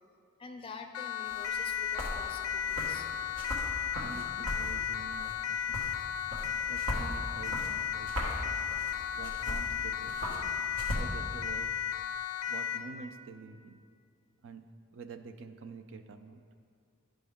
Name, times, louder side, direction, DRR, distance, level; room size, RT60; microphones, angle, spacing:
voice 1, 0.4-3.1, left 4 dB, 25° left, 4 dB, 0.4 m, -47 dB
Siren, 0.9-12.9, left 9 dB, 90° left, 0.4 m, -35 dB
sound 1, 1.2-11.0, equal, 85° right, 1.2 m, -39 dB
voice 2, 4.0-5.9 6.7-8.7 9.1-10.2 10.9-11.7 12.5-13.8 14.4-16.4, right 4 dB, 60° right, 8 dB, 0.4 m, -47 dB
10.5 x 5.1 x 3.5 m, 2.2 s
head